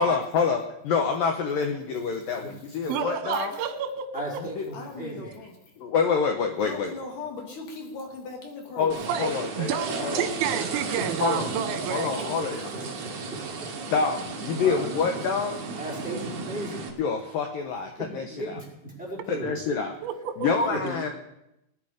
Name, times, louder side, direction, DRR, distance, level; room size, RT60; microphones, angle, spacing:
voice 1, 0.0-3.6 4.6-4.7 5.8-7.0 8.8-9.7 10.0-10.3 11.2-11.5 11.9-12.7 13.9-15.6 17.0-18.6 19.4-19.9 20.4-21.1, left 5 dB, 75° left, 5 dB, 2.0 m, -27 dB
voice 2, 2.9-4.2 9.1-9.3 9.6-12.1 20.0-20.5, right 8 dB, 80° right, 8 dB, 3.5 m, -29 dB
voice 3, 4.1-5.3 10.9-11.0 14.6-14.9 15.7-16.8 18.0-19.5 20.7-20.9, right 1 dB, ahead, -4 dB, 4.3 m, -35 dB
voice 4, 4.7-5.6 6.6-9.1, left 3 dB, 55° left, 2 dB, 3.1 m, -38 dB
sound 1, 8.9-16.9, right 4 dB, 50° right, 2.9 m, -34 dB
19.5 x 10.5 x 5.0 m, 0.84 s
omnidirectional pair, 5.4 m